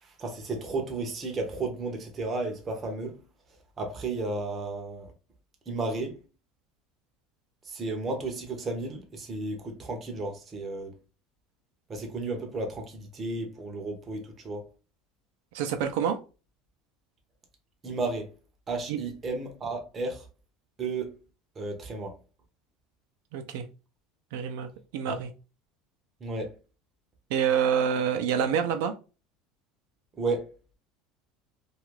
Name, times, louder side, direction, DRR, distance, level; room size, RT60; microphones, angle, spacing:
voice 1, 0.0-3.2 3.8-5.1 5.7-6.2 7.7-11.0 11.9-14.6 17.8-18.3 18.7-20.3 20.8-21.1 21.6-22.2 25.1-25.2 26.2-26.5 30.2-30.6, right 3 dB, 20° right, 0.6 m, -33 dB
voice 2, 15.5-16.2 18.9-19.0 23.3-23.6 24.3-25.3 27.3-28.9, right 8 dB, 70° right, 0.4 m, -27 dB
2.8 x 2.3 x 3.0 m
cardioid pair, 180°, 0 cm